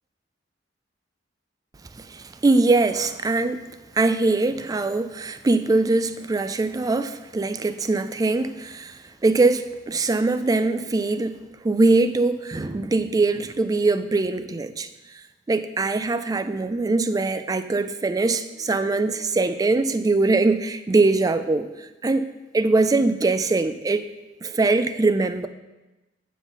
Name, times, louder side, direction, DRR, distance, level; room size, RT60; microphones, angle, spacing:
voice 1, 2.4-3.6 4.0-8.9 9.2-11.4 11.6-14.9 15.5-21.7 22.0-22.3 22.5-24.0 24.4-25.5, right 3 dB, 20° right, 11 dB, 0.3 m, -22 dB
8.0 x 4.0 x 6.0 m, 1.1 s
head